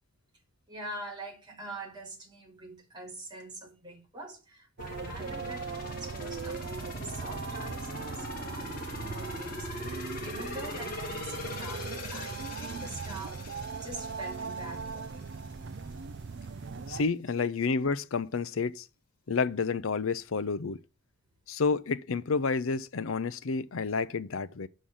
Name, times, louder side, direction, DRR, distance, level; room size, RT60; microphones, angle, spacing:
voice 1, 0.7-15.2, right 1 dB, 20° right, 2.5 m, -44 dB
sound 1, 4.8-15.5 15.9-16.0, left 2 dB, 40° left, 2.9 m, -42 dB
sound 2, 4.8-17.0, right 4 dB, 55° right, 0.4 m, -39 dB
voice 2, 16.9-18.8 19.3-20.8 21.5-24.7, left 4 dB, 70° left, 0.6 m, -30 dB
6.3 x 5.8 x 6.9 m
head